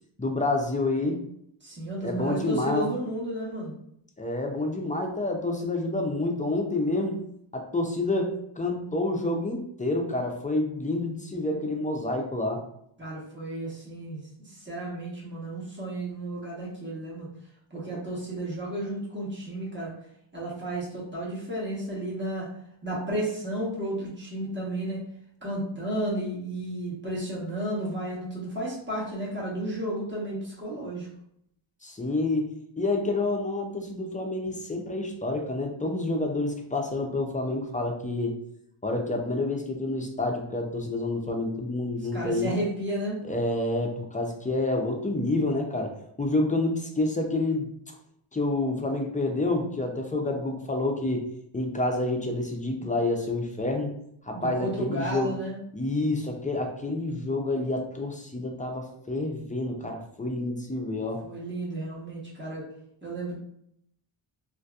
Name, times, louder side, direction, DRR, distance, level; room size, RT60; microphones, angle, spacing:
voice 1, 0.2-1.2 2.0-2.9 4.2-7.2 7.5-12.6 17.7-17.9 31.8-32.5 32.8-38.3 38.8-42.5 43.3-47.7 48.3-51.2 51.5-53.9 54.3-55.3 55.7-61.2, left 2 dB, 20° left, 2 dB, 0.3 m, -28 dB
voice 2, 1.6-3.8 13.0-17.3 17.7-19.9 20.3-22.5 22.8-25.0 25.4-31.1 42.1-43.2 54.3-55.6 61.2-62.6 63.0-63.4, right 1 dB, 25° right, -6 dB, 1.0 m, -33 dB
2.6 x 2.4 x 2.3 m, 0.72 s
wide cardioid pair, 90°, 48 cm